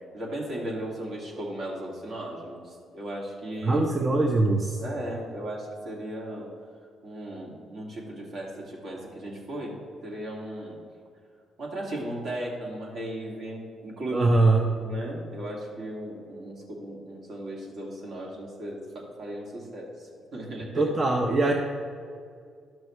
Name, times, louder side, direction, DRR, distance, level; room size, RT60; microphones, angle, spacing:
voice 1, 0.1-3.9 4.8-6.5 7.0-9.7 10.0-10.8 11.6-14.2 14.8-20.8, right 1 dB, 65° right, -3 dB, 2.3 m, -36 dB
voice 2, 3.6-4.8 14.1-14.7 20.7-21.5, right 2 dB, 35° right, 1 dB, 0.8 m, -22 dB
12.5 x 6.1 x 3.2 m, 2.3 s
cardioid pair, 90°, 0 cm